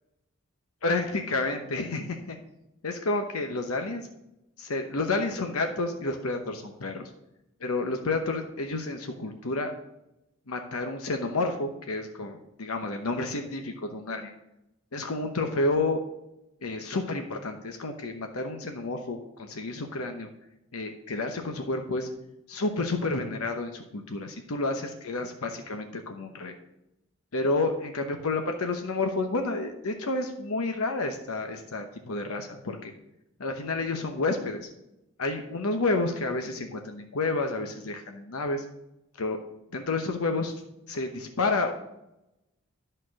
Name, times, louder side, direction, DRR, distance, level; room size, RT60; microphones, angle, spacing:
voice 1, 0.8-2.4 2.8-4.1 4.6-7.1 7.6-9.7 10.5-14.3 14.9-16.0 16.6-20.3 20.7-22.1 22.5-26.6 27.3-32.9 33.4-34.7 35.2-38.6 39.2-39.4 39.7-40.5 40.9-41.7, left 2 dB, 80° left, 5 dB, 0.9 m, -30 dB
11.0 x 4.4 x 6.3 m, 0.88 s
head